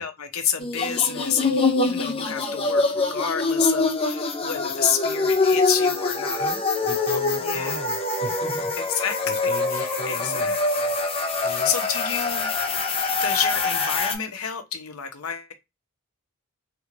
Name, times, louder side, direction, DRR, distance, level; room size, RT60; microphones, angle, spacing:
voice 1, 0.0-6.5 7.4-7.8 8.8-11.0 11.4-12.5 13.2-15.5, left 8 dB, 75° left, 0.7 m, -29 dB
sound 1, 0.6-14.2, left 3 dB, 25° left, 0.6 m, -24 dB
voice 2, 6.4-7.9 8.2-8.7 9.2-10.5 11.4-11.7, left 1 dB, 45° left, 1.3 m, -36 dB
3.4 x 2.4 x 3.2 m
head